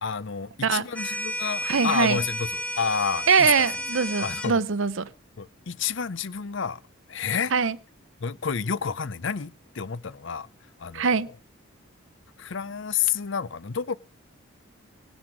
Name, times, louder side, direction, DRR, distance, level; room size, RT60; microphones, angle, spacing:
voice 1, 0.0-3.7 4.2-4.6 5.4-6.8 7.1-7.5 8.2-10.5 10.8-11.3 12.4-14.0, left 6 dB, 60° left, 0.6 m, -30 dB
sound 1, 0.9-4.5, equal, 5° left, 1.3 m, -32 dB
voice 2, 1.6-2.2 3.3-5.1 7.5-7.8 10.9-11.3, right 5 dB, 70° right, 0.7 m, -22 dB
20.5 x 8.2 x 6.2 m
head